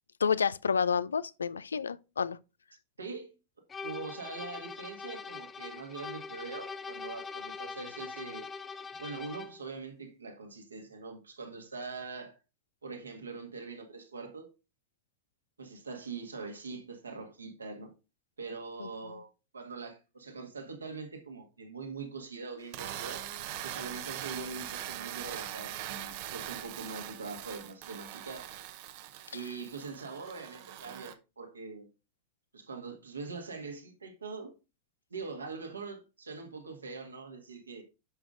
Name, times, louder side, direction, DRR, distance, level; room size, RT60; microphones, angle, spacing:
voice 1, 0.2-2.4 18.8-18.9, left 6 dB, 70° left, 0.3 m, -29 dB
voice 2, 3.0-3.3 3.8-8.5 9.0-12.4 12.8-14.5 15.6-17.9 18.4-23.2 23.6-28.5 29.3-31.9 32.5-34.5 35.1-37.8, right 4 dB, 75° right, 1.7 m, -43 dB
sound 1, 3.7-9.6, left 5 dB, 20° left, 0.5 m, -42 dB
sound 2, 22.6-31.1, right 12 dB, 50° right, 0.7 m, -41 dB
10.5 x 6.2 x 2.5 m
figure-of-eight pair, 90°, 0 cm